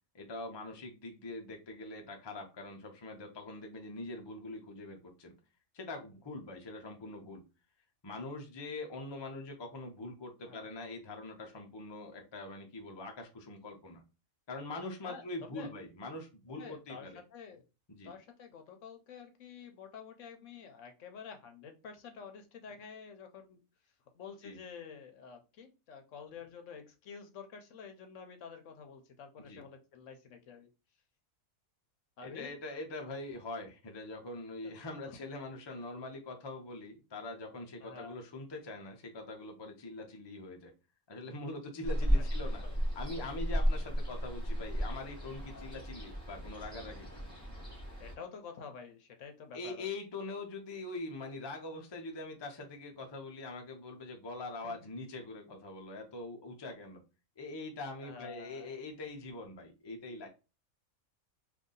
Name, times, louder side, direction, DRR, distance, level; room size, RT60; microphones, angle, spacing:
voice 1, 0.1-5.3 5.7-7.4 8.0-14.0 14.5-17.2 17.9-18.1 24.4-24.6 29.4-29.6 32.2-40.7 41.1-42.6 43.0-47.1 49.5-57.0 57.4-60.3, left 2 dB, 35° left, 2 dB, 0.4 m, -43 dB
voice 2, 15.0-15.7 16.5-17.6 18.0-23.6 24.1-30.7 32.2-32.5 34.6-34.7 35.0-35.2 37.8-38.2 42.0-42.3 42.6-42.8 45.3-45.7 48.0-49.9 54.6-54.8 58.0-58.8, left 6 dB, 65° left, 6 dB, 0.9 m, -49 dB
Ocean, 41.8-48.1, equal, 5° left, 1.1 m, -34 dB
2.7 x 2.6 x 3.7 m, 0.30 s
omnidirectional pair, 1.5 m